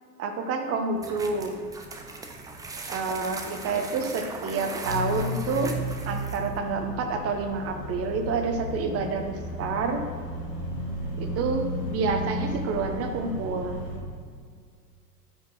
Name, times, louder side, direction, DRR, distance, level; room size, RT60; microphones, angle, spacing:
voice 1, 0.2-1.6 2.9-5.7 6.1-10.0 11.2-13.8, right 4 dB, 30° right, 5 dB, 1.1 m, -28 dB
sound 1, 1.0-6.6, right 3 dB, 10° right, 0.5 m, -39 dB
sound 2, 4.8-14.0, left 1 dB, 80° left, 2.3 m, -33 dB
9.2 x 5.4 x 6.0 m, 2.1 s
figure-of-eight pair, 95°, 49 cm